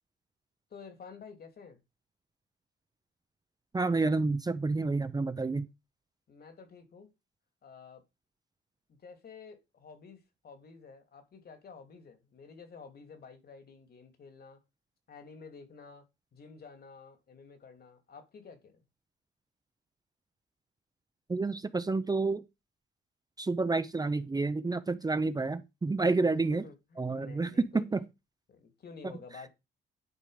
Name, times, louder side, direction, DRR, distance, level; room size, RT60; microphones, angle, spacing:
voice 1, 0.7-1.8 6.3-7.1 7.6-8.0 8.9-14.6 15.1-16.0 16.3-18.8 26.4-28.0 28.5-29.5, left 5 dB, 50° left, 2.8 m, -51 dB
voice 2, 3.7-5.7 21.3-22.4 23.4-26.6 27.0-28.0, right 3 dB, 20° right, 0.7 m, -29 dB
11.0 x 4.9 x 5.0 m
cardioid pair, 90°, 20 cm